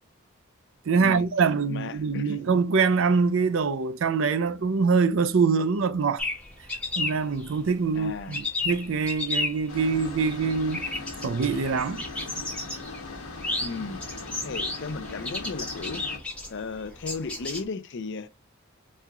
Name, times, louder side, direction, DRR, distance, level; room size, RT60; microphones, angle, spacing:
voice 1, 0.9-6.2 7.0-10.8 11.2-12.0, right 5 dB, 60° right, 0.4 m, -24 dB
voice 2, 1.7-2.4 7.9-8.4 13.6-14.1 14.4-16.0 16.5-18.3, left 4 dB, 55° left, 0.5 m, -35 dB
sound 1, 6.2-17.6, left 3 dB, 5° left, 1.2 m, -33 dB
sound 2, 9.7-16.2, left 3 dB, 75° left, 1.1 m, -39 dB
4.3 x 3.5 x 2.2 m
head